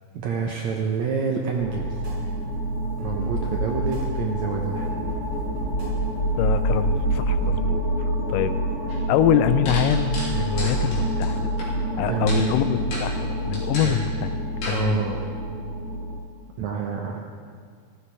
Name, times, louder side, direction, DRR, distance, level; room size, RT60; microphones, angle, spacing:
voice 1, 0.1-2.0 3.0-4.9 12.0-12.5 13.8-14.0 14.7-15.2 16.6-17.2, right 6 dB, 85° right, 1 dB, 1.6 m, -27 dB
sound 1, 1.6-16.2, right 1 dB, 30° left, 2.3 m, -27 dB
sound 2, 1.9-7.5, right 1 dB, 65° right, 6.1 m, -36 dB
voice 2, 6.4-8.5 8.9-11.5 12.0-14.4 14.7-15.0, left 10 dB, 85° left, 11 dB, 1.9 m, -25 dB
sound 3, 8.9-9.0 9.7-11.7 12.3-12.5 12.9-13.1 13.5-14.0 14.6-14.8, left 1 dB, 65° left, 4.8 m, -33 dB
15.5 x 12.0 x 4.8 m, 2.1 s
omnidirectional pair, 4.4 m